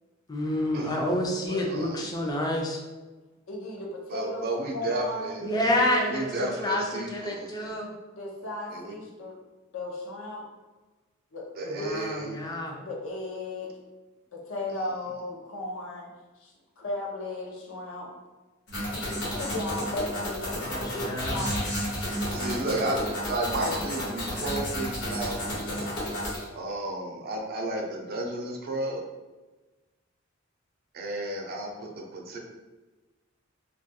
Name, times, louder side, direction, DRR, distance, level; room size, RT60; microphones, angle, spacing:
voice 1, 0.3-2.8 5.4-7.9 11.7-12.8 20.5-21.4, left 1 dB, 20° left, 0 dB, 0.4 m, -29 dB
voice 2, 1.4-2.0 4.1-5.5 6.1-7.8 8.7-8.9 11.6-12.4 14.7-14.8 22.3-25.9 26.6-29.0 30.9-32.4, right 1 dB, 50° right, 1 dB, 0.4 m, -33 dB
voice 3, 3.5-4.5 4.7-6.2 8.2-9.4 9.7-10.4 11.3-11.9 12.8-13.7 14.3-16.1 16.4-18.1 18.9-21.7 22.6-22.9, left 2 dB, 75° left, -1 dB, 0.6 m, -36 dB
sound 1, 18.7-26.4, equal, 60° left, 0.9 m, -31 dB
2.3 x 2.2 x 2.6 m, 1.2 s
head